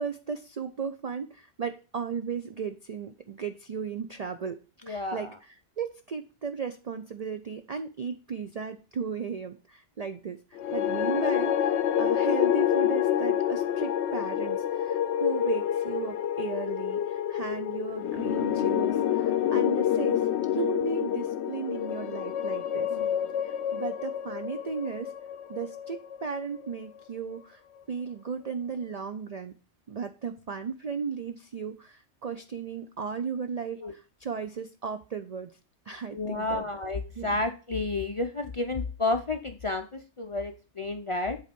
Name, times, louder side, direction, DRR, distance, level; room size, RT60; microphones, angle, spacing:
voice 1, 0.0-4.6 4.9-22.9 23.4-25.1 25.5-27.6 27.9-29.5 29.9-35.5 35.9-36.6 37.2-37.4, right 6 dB, 60° right, 8 dB, 0.4 m, -35 dB
voice 2, 4.8-5.4 18.3-18.5 20.5-20.7 22.9-23.4 33.8-33.9 36.1-41.4, left 2 dB, 45° left, 6 dB, 0.4 m, -31 dB
sound 1, 10.6-26.9, left 10 dB, 70° left, 0.8 m, -28 dB
8.0 x 4.1 x 5.1 m, 0.35 s
omnidirectional pair, 1.2 m